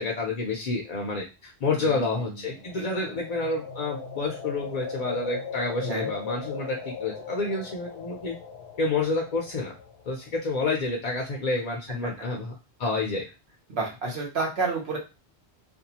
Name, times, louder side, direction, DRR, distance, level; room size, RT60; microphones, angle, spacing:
voice 1, 0.0-8.4 8.8-9.7 10.1-12.5 12.8-13.3, left 3 dB, 50° left, 0 dB, 0.5 m, -29 dB
voice 2, 1.8-2.5 2.8-2.9 5.8-6.1 12.0-12.1 13.7-15.0, right 3 dB, 80° right, 0 dB, 1.1 m, -30 dB
sound 1, 2.5-10.5, left 5 dB, 85° left, 0.9 m, -38 dB
2.5 x 2.3 x 2.8 m, 0.28 s
omnidirectional pair, 1.1 m